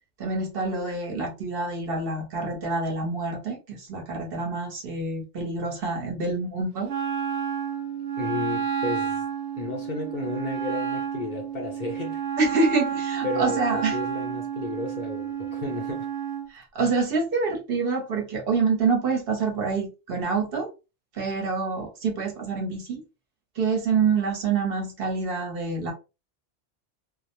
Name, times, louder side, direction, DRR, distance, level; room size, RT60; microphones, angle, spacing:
voice 1, 0.2-6.9 12.4-14.0 16.5-20.7 21.1-23.0 23.5-25.9, right 4 dB, 60° right, 0.9 m, -26 dB
Wind instrument woodwind instrument, 6.9-16.5, right 8 dB, 85° right, 0.9 m, -30 dB
voice 2, 8.2-9.2 9.6-12.2 13.2-16.1, left 4 dB, 55° left, 0.6 m, -33 dB
2.3 x 2.0 x 2.8 m
omnidirectional pair, 1.2 m